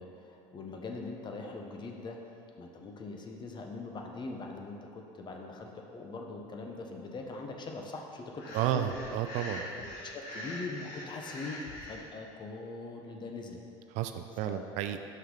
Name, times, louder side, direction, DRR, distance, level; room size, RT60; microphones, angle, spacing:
voice 1, 0.0-2.2 2.6-8.8 9.6-13.6 14.4-14.7, left 3 dB, 35° left, 2 dB, 0.8 m, -42 dB
Breathing, 8.4-12.0, left 1 dB, 75° left, 1.2 m, -43 dB
voice 2, 8.5-9.8 13.9-15.0, right 10 dB, 65° right, 8 dB, 0.4 m, -32 dB
5.8 x 5.6 x 3.8 m, 2.7 s
supercardioid pair, 85°, 14 cm